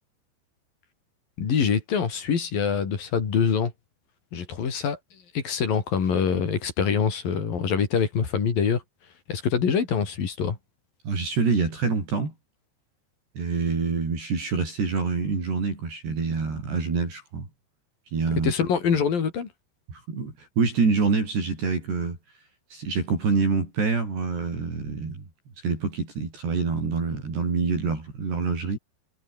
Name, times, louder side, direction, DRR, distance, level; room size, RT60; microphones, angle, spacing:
voice 1, 1.4-3.7 4.3-5.0 5.3-8.8 9.3-10.6 18.3-19.5, left 6 dB, 50° left, 5.0 m, -24 dB
voice 2, 11.0-12.3 13.4-17.5 18.1-18.5 19.9-22.2 22.7-25.2 25.6-28.8, right 4 dB, 60° right, 9.4 m, -26 dB
omnidirectional pair, 5.5 m